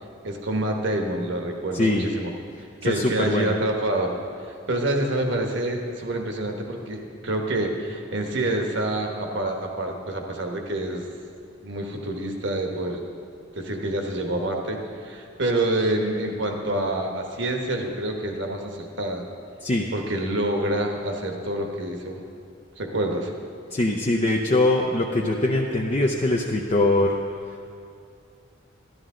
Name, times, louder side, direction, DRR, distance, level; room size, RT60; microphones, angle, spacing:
voice 1, 0.2-2.3 2.8-4.1 4.4-11.0 11.6-13.0 13.5-19.2 19.9-22.2 22.8-23.3, right 1 dB, 60° right, 2 dB, 1.2 m, -27 dB
voice 2, 1.7-2.1 2.8-3.6 19.6-19.9 23.7-27.2, left 2 dB, 30° left, 0 dB, 0.6 m, -22 dB
12.5 x 12.0 x 3.8 m, 2.5 s
head